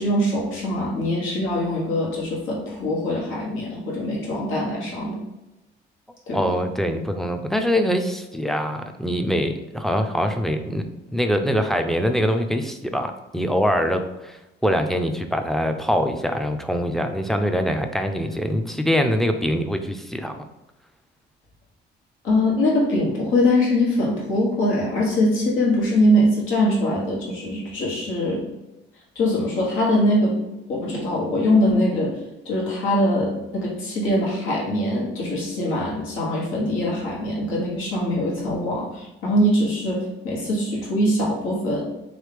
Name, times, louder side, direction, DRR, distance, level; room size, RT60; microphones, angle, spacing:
voice 1, 0.0-5.2 6.3-6.5 22.2-28.4 29.1-30.4 30.7-32.2 32.4-41.8, left 1 dB, 90° left, -4 dB, 1.3 m, -22 dB
voice 2, 6.3-10.8 11.1-20.5, equal, ahead, 6 dB, 0.4 m, -23 dB
3.8 x 3.2 x 3.3 m, 0.99 s
cardioid pair, 90°, 20 cm